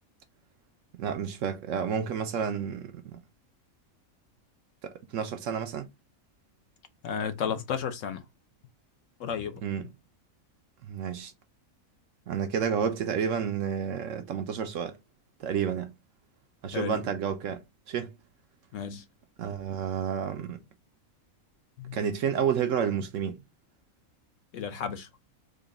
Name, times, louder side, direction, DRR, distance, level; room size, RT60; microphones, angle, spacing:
voice 1, 1.0-3.2 4.8-5.9 9.6-9.9 10.8-11.3 12.3-15.0 15.4-15.9 16.6-18.2 19.4-20.6 21.9-23.4, right 7 dB, 70° right, 0.9 m, -30 dB
voice 2, 7.0-8.2 9.2-9.6 16.7-17.0 18.7-19.0 21.8-22.0 24.5-25.1, left 7 dB, 70° left, 0.9 m, -33 dB
3.8 x 2.1 x 3.7 m
omnidirectional pair, 1.5 m